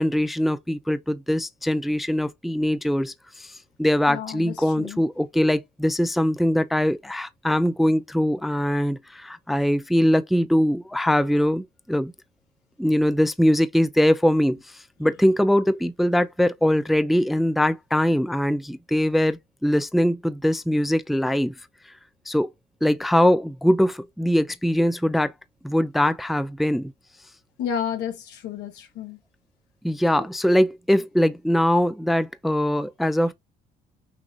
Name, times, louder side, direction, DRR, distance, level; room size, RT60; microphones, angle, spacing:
voice 1, 0.0-12.1 12.8-21.5 22.3-22.5 22.8-25.3 25.6-26.9 29.8-33.3, equal, ahead, 0.4 m, -22 dB
voice 2, 4.1-5.0 27.6-29.2 30.2-30.3, left 8 dB, 80° left, 1.6 m, -31 dB
6.1 x 2.7 x 2.5 m
cardioid pair, 110°, 17 cm